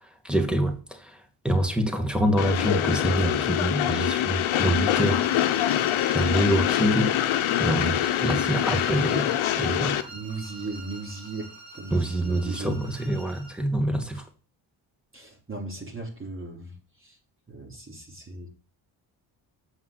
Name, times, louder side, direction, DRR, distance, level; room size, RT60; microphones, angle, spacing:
voice 1, 0.2-5.3 5.6-5.7 6.0-7.2 7.6-10.1 11.9-14.2, right 1 dB, ahead, 2.1 m, -26 dB
Train, 2.4-10.0, left 12 dB, 75° left, 0.9 m, -25 dB
sound 1, 4.9-13.6, right 2 dB, 70° right, 3.0 m, -44 dB
voice 2, 10.1-12.8 15.1-17.2 17.5-18.5, right 2 dB, 25° right, 3.2 m, -38 dB
8.1 x 5.6 x 6.1 m
supercardioid pair, 65°, 49 cm